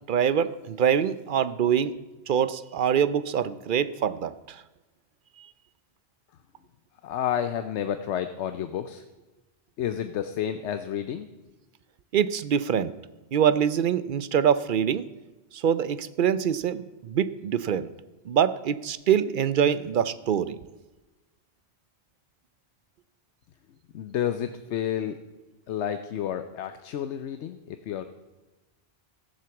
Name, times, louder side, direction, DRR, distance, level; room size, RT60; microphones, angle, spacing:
voice 1, 0.1-4.6 5.4-5.5 12.1-12.9 13.3-15.1 15.5-17.9 18.3-20.6, right 8 dB, 55° right, 15 dB, 0.7 m, -24 dB
voice 2, 7.0-9.0 9.8-11.3 23.9-25.2 25.7-28.0, left 10 dB, 85° left, 9 dB, 1.0 m, -30 dB
14.5 x 7.7 x 7.0 m, 1.1 s
omnidirectional pair, 1.1 m